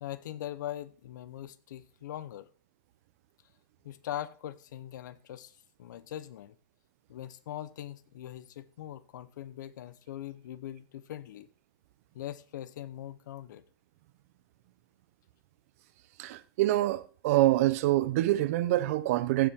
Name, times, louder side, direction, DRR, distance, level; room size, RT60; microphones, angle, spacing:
voice 1, 0.0-2.5 3.8-6.6 7.1-11.5 12.1-13.6, left 12 dB, 60° left, 0.9 m, -41 dB
voice 2, 16.2-19.5, right 16 dB, 45° right, 0.7 m, -26 dB
15.5 x 6.9 x 3.7 m
supercardioid pair, 160°, 11 cm